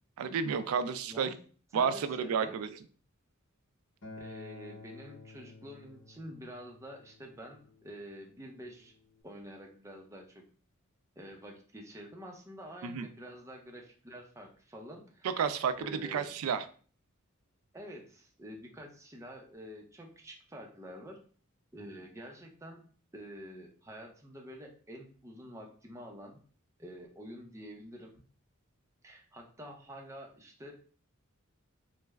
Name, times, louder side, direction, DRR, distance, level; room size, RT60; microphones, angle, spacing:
voice 1, 0.2-1.3 1.7-2.7 12.8-13.1 15.4-15.7 16.1-16.6, right 6 dB, 85° right, 12 dB, 0.3 m, -31 dB
voice 2, 1.7-2.6 4.2-8.9 9.2-10.4 11.2-15.4 15.8-16.3 17.7-21.2 21.7-22.8 23.1-26.4 26.8-28.1 29.0-30.7, equal, 15° right, 1 dB, 0.6 m, -48 dB
Acoustic guitar, 4.0-9.2, left 2 dB, 60° left, 0.9 m, -52 dB
3.1 x 2.1 x 3.4 m, 0.42 s
head